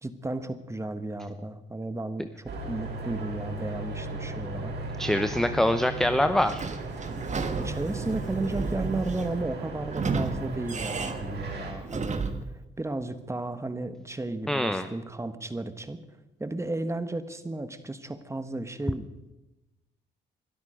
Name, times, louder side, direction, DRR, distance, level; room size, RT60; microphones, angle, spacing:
voice 1, 0.0-4.7 7.6-12.2 12.8-16.0 16.4-19.1, right 2 dB, 15° right, 10 dB, 1.5 m, -34 dB
sound 1, 2.5-11.7, right 2 dB, 60° right, 5.8 m, -36 dB
voice 2, 5.0-6.6 14.5-14.9, left 1 dB, ahead, 10 dB, 0.7 m, -24 dB
Sliding door / Squeak, 6.4-12.5, right 4 dB, 35° right, 1.6 m, -33 dB
22.5 x 12.5 x 5.2 m, 1.0 s
cardioid pair, 90°, 20 cm